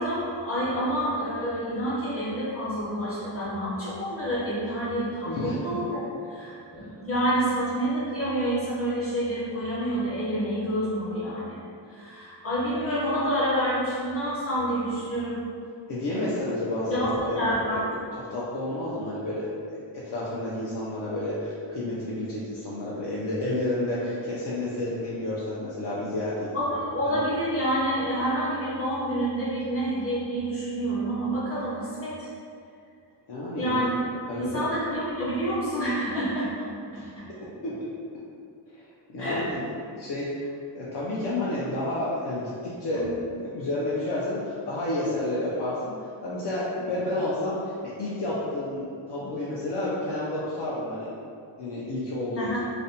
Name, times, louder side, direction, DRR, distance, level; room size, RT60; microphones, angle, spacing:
voice 1, 0.0-6.0 6.2-15.4 16.8-17.1 17.3-17.8 26.5-32.3 33.6-33.9 34.4-36.7 36.9-37.0 39.2-39.5 42.9-43.1 52.4-52.6, equal, 30° left, -9 dB, 0.8 m, -28 dB
voice 2, 5.2-5.8 6.8-6.9 15.9-17.8 18.3-26.5 27.0-27.2 33.3-33.8 34.3-34.7 36.9-37.1 37.6-37.8 38.7-39.6 40.0-40.3 40.7-43.1 43.4-51.1 51.6-52.5, left 1 dB, 60° left, -8 dB, 0.5 m, -30 dB
2.5 x 2.1 x 2.7 m, 2.4 s
wide cardioid pair, 155°, 47 cm